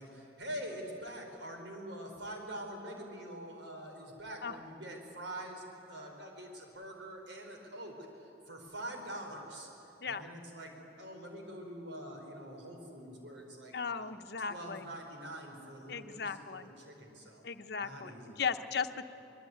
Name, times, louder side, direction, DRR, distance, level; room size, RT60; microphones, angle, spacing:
voice 1, 0.0-14.1 14.5-17.4 17.8-18.4, right 1 dB, 85° right, 2 dB, 4.6 m, -45 dB
voice 2, 13.7-14.8 15.9-16.7 17.4-18.1 18.4-19.1, left 6 dB, 60° left, 8 dB, 1.0 m, -36 dB
24.5 x 21.5 x 9.5 m, 2.9 s
head